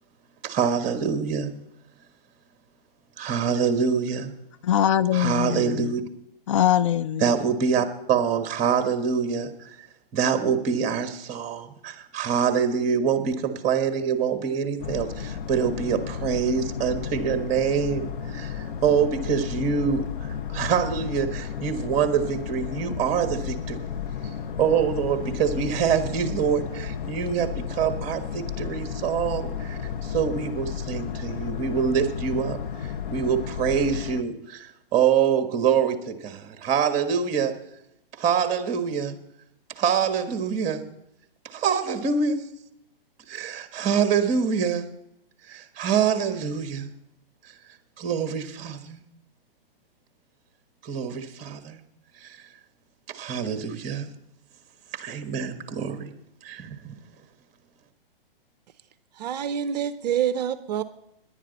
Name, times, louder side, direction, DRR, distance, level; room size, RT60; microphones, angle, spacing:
voice 1, 0.4-1.6 3.2-4.3 5.1-6.0 7.2-9.7 10.1-23.9 24.6-32.6 33.1-37.6 38.2-39.2 39.8-40.9 41.4-42.5 43.3-44.9 45.5-46.9 48.0-49.0 50.8-51.8 52.2-52.4 53.1-54.1 54.9-56.1 56.4-56.8, right 7 dB, 25° right, 8 dB, 1.5 m, -25 dB
voice 2, 4.6-5.9 6.5-7.3, left 10 dB, 35° left, 12 dB, 0.4 m, -22 dB
Boat Water vehicle, 14.8-34.2, left 7 dB, 55° left, 1.1 m, -33 dB
voice 3, 59.2-60.8, right 9 dB, 45° right, 13 dB, 0.6 m, -26 dB
18.0 x 11.0 x 4.1 m, 0.81 s
hypercardioid pair, 130°, 29 cm